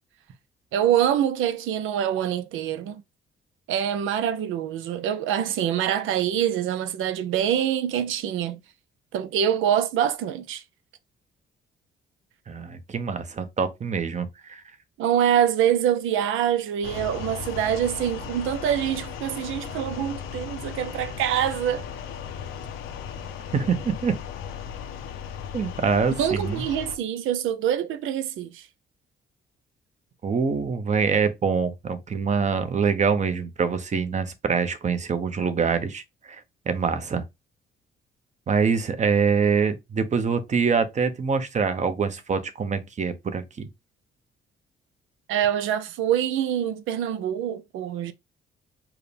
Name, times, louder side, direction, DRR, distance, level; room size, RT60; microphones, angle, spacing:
voice 1, 0.7-3.0 3.7-8.6 9.1-10.6 15.0-21.9 26.2-28.7 45.3-48.1, right 10 dB, 85° right, 0.5 m, -25 dB
voice 2, 12.5-14.6 23.5-24.1 25.5-26.6 30.2-36.4 36.7-37.2 38.5-43.7, right 5 dB, 35° right, 0.8 m, -25 dB
sound 1, 16.8-27.0, left 7 dB, 90° left, 0.8 m, -36 dB
4.6 x 2.2 x 3.3 m
cardioid pair, 90°, 20 cm